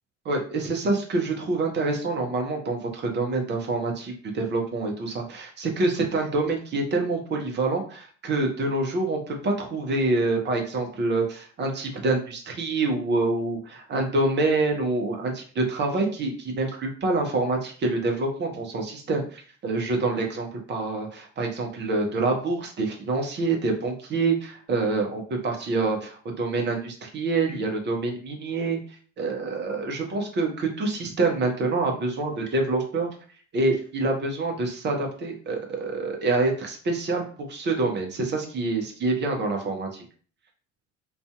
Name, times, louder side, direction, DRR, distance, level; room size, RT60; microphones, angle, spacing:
voice 1, 0.2-28.8 29.2-33.1 33.5-40.0, right 3 dB, 30° right, 2 dB, 0.7 m, -26 dB
2.5 x 2.3 x 2.2 m, 0.43 s
figure-of-eight pair, 60°, 37 cm